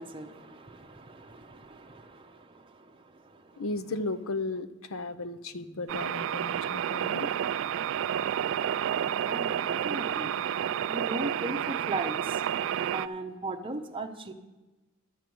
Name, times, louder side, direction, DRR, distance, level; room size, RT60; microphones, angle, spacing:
voice 1, 0.0-3.6 9.3-10.4 10.8-12.4 12.9-14.3, right 2 dB, 25° right, 3 dB, 0.8 m, -38 dB
voice 2, 3.6-7.4, left 2 dB, 80° left, 12 dB, 0.7 m, -35 dB
sound 1, 5.9-13.1, right 9 dB, 65° right, 0.3 m, -30 dB
11.0 x 6.8 x 7.7 m, 1.1 s
head